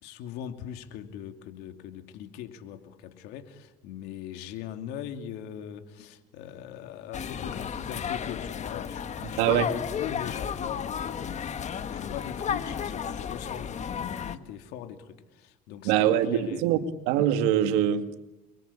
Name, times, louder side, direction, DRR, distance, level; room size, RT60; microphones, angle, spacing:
voice 1, 0.0-11.5 11.9-16.9, left 9 dB, 85° left, 2.8 m, -40 dB
sound 1, 7.1-14.4, left 7 dB, 45° left, 1.6 m, -33 dB
voice 2, 15.9-16.8 17.1-18.2, right 11 dB, 90° right, 2.0 m, -23 dB
30.0 x 23.0 x 8.6 m
supercardioid pair, 90°, 17 cm